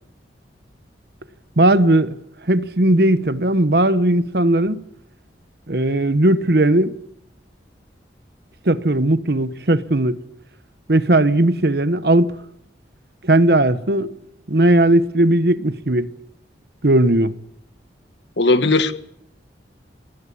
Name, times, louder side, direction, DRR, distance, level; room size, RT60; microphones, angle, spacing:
voice 1, 1.6-2.2 2.5-4.8 5.7-6.9 8.6-10.2 10.9-12.3 13.2-14.1 14.5-16.1 16.8-17.3, right 1 dB, 60° right, 1.2 m, -17 dB
voice 2, 18.4-18.9, left 2 dB, 75° left, 1.6 m, -16 dB
24.5 x 20.0 x 8.6 m
head